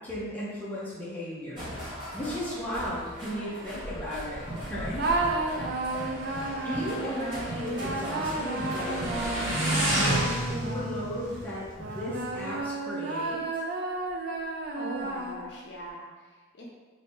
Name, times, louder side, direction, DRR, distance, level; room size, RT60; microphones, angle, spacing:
voice 1, 0.0-1.6 2.1-5.1 6.6-9.3 9.8-13.4, equal, 10° left, -8 dB, 0.7 m, -35 dB
sound 1, 1.5-10.5, equal, 20° right, 1.1 m, -39 dB
Motorcycle, 4.3-12.6, right 1 dB, 75° right, 0.9 m, -33 dB
sound 2, 5.0-11.2 11.8-15.7, right 2 dB, 50° right, 0.3 m, -32 dB
voice 2, 14.7-16.7, equal, 55° left, -4 dB, 0.6 m, -41 dB
2.7 x 2.6 x 3.5 m, 1.3 s
head